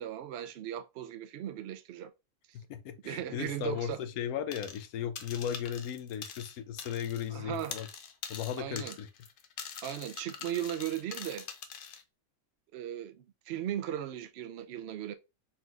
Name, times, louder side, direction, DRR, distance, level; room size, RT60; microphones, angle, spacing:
voice 1, 0.0-2.1 2.5-2.6 3.0-4.0 7.3-7.7 8.6-9.0 9.8-11.5 12.7-15.1, right 11 dB, 65° right, 0.7 m, -37 dB
voice 2, 2.5-7.9 8.3-9.1, left 9 dB, 90° left, 1.1 m, -36 dB
sound 1, 4.5-4.9 5.2-7.3 7.5-12.0, left 6 dB, 60° left, 0.6 m, -44 dB
4.3 x 3.7 x 2.4 m
omnidirectional pair, 1.5 m